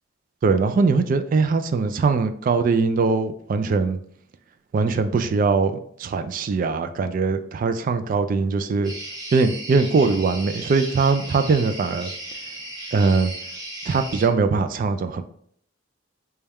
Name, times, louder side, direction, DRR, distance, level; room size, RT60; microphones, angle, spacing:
voice 1, 0.4-4.0 4.7-8.9 9.3-12.1 12.9-13.3 13.9-15.2, right 4 dB, 45° right, 9 dB, 0.3 m, -21 dB
sound 1, 8.8-14.3, right 1 dB, 20° right, 0.9 m, -36 dB
4.1 x 2.3 x 3.4 m, 0.64 s
head